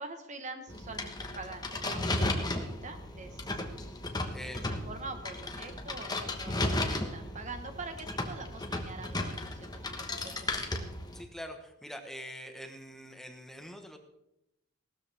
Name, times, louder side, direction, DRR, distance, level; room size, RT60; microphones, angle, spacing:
voice 1, 0.0-3.5 4.4-10.9, right 3 dB, 35° right, 7 dB, 1.2 m, -45 dB
sound 1, 0.7-11.2, left 2 dB, 20° left, 1.3 m, -35 dB
voice 2, 11.1-14.0, equal, ahead, 5 dB, 1.2 m, -44 dB
17.5 x 13.0 x 3.5 m, 0.84 s
head